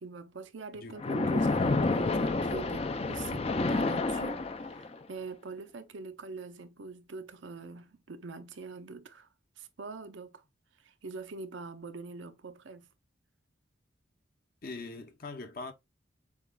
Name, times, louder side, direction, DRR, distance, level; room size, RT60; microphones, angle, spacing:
voice 1, 0.0-9.3 9.6-10.4 10.8-12.9, right 4 dB, 70° right, 0.6 m, -44 dB
voice 2, 0.7-1.3 14.6-15.7, left 3 dB, 45° left, 0.8 m, -41 dB
Splash splatter, 1.0-5.0, left 3 dB, 30° left, 0.4 m, -29 dB
7.0 x 2.4 x 2.2 m
head